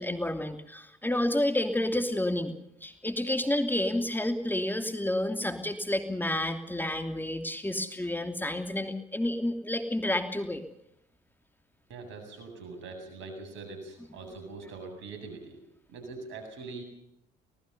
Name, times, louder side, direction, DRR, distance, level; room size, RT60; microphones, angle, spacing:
voice 1, 0.0-2.5 2.8-10.6, left 1 dB, 10° left, 7 dB, 2.9 m, -30 dB
voice 2, 11.9-15.6 15.9-16.8, right 3 dB, 75° right, 6 dB, 7.6 m, -43 dB
25.5 x 19.0 x 5.5 m, 0.75 s
hypercardioid pair, 60°, 20 cm